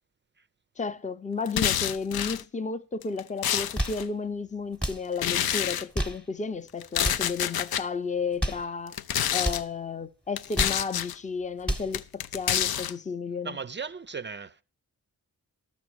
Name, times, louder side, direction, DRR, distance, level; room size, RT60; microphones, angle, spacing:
voice 1, 0.8-9.0 9.3-13.6, left 4 dB, 20° left, 0.6 m, -33 dB
sound 1, 1.5-2.4 3.0-4.0 5.2-5.8 6.8-7.8 8.9-9.6 10.4-11.1 11.9-12.9, left 10 dB, 80° left, 0.5 m, -28 dB
sound 2, 3.6-4.1 4.7-5.1 5.8-6.3 6.9-7.3 8.2-8.7 9.4-9.7 10.3-10.9 11.4-12.0, right 1 dB, 5° left, 1.0 m, -31 dB
voice 2, 13.4-14.6, right 5 dB, 30° right, 0.4 m, -36 dB
13.0 x 6.1 x 4.7 m
wide cardioid pair, 85°, 36 cm